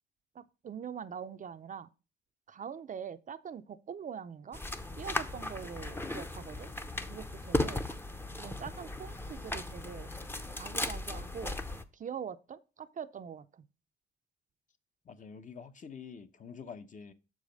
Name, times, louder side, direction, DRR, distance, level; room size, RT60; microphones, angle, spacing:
voice 1, 0.3-1.9 2.5-4.6 5.0-6.7 7.1-7.8 8.4-10.1 10.6-11.6 11.9-13.6, right 7 dB, 40° right, 0.5 m, -43 dB
sound 1, 4.5-11.8, left 2 dB, 10° left, 0.7 m, -37 dB
voice 2, 15.0-17.1, left 6 dB, 40° left, 0.8 m, -47 dB
6.7 x 4.9 x 5.2 m
cardioid pair, 90°, 20 cm